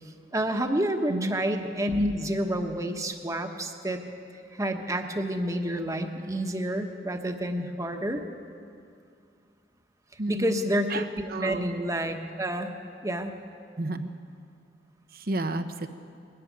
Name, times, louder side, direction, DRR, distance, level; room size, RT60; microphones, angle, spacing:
voice 1, 0.3-4.0 4.5-8.2 10.3-12.7 13.0-13.3, right 1 dB, 20° right, 5 dB, 1.3 m, -29 dB
voice 2, 10.2-11.7 13.8-14.1 15.1-15.9, right 2 dB, 55° right, 8 dB, 1.0 m, -32 dB
21.0 x 13.5 x 9.5 m, 2.4 s
head